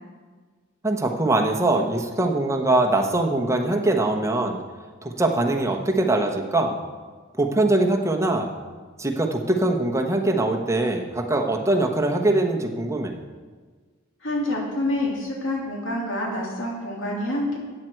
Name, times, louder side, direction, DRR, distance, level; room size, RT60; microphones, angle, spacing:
voice 1, 0.8-4.6 5.0-6.8 7.4-8.5 9.0-13.2, right 2 dB, 15° right, 2 dB, 1.0 m, -22 dB
voice 2, 14.2-17.6, left 1 dB, 65° left, -2 dB, 3.0 m, -27 dB
14.0 x 9.0 x 4.6 m, 1.5 s
head